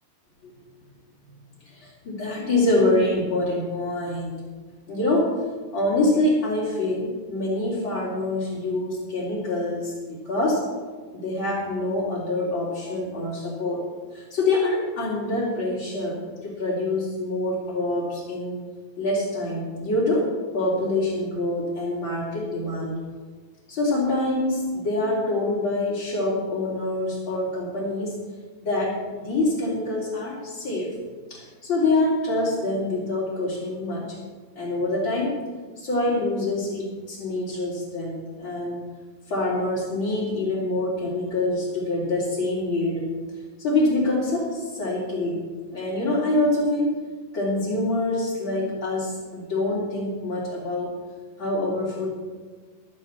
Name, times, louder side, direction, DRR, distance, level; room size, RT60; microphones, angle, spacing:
voice 1, 1.7-4.3 4.9-5.4 5.7-9.9 10.2-10.6 11.1-13.9 14.1-18.6 19.0-23.0 23.7-28.2 28.6-30.9 31.3-34.2 34.6-35.4 35.8-38.8 39.3-43.0 43.6-45.4 45.7-46.9 47.3-50.9 51.4-52.1, left 2 dB, 30° left, -8 dB, 3.5 m, -25 dB
15.5 x 12.5 x 4.4 m, 1.5 s
omnidirectional pair, 4.8 m